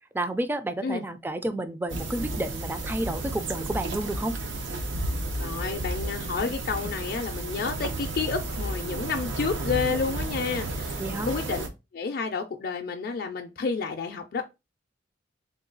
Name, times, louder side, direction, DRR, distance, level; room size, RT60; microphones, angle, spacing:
voice 1, 0.1-4.4 11.0-11.3, right 1 dB, 10° right, 0.3 m, -30 dB
sound 1, 1.9-11.7, right 2 dB, 90° right, 0.7 m, -32 dB
voice 2, 5.4-11.6 11.9-14.4, left 5 dB, 55° left, 0.4 m, -30 dB
3.7 x 2.3 x 3.8 m
head